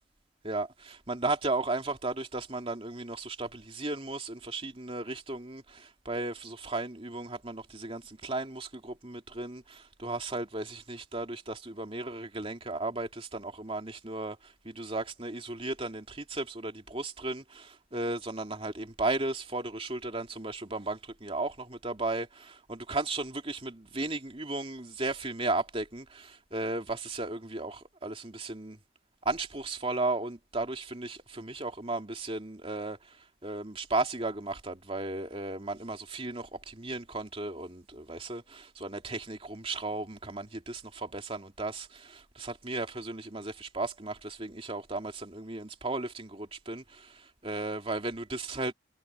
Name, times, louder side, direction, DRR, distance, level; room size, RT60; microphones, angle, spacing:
voice 1, 0.4-28.8 29.2-48.7, right 2 dB, 30° right, 2.7 m, -35 dB
head